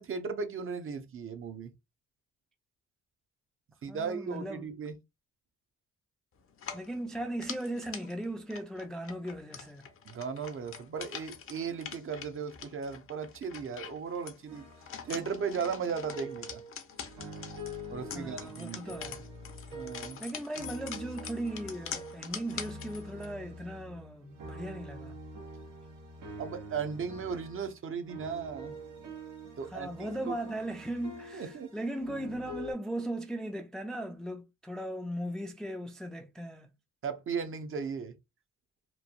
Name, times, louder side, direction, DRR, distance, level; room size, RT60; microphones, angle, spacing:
voice 1, 0.0-1.7 3.8-5.0 10.1-14.7 15.0-16.6 17.9-18.9 19.7-20.2 26.4-28.8 29.6-30.4 31.3-31.7 37.0-38.2, right 6 dB, 45° right, 0.6 m, -36 dB
voice 2, 3.9-4.6 6.7-9.8 18.1-19.2 20.2-25.2 29.6-36.7, right 1 dB, ahead, 0.4 m, -38 dB
sound 1, 6.5-23.3, left 7 dB, 45° left, 0.6 m, -45 dB
sound 2, 14.5-20.3 20.5-32.7, right 1 dB, 85° right, 1.0 m, -46 dB
3.1 x 2.2 x 2.4 m
cardioid pair, 90°, 30 cm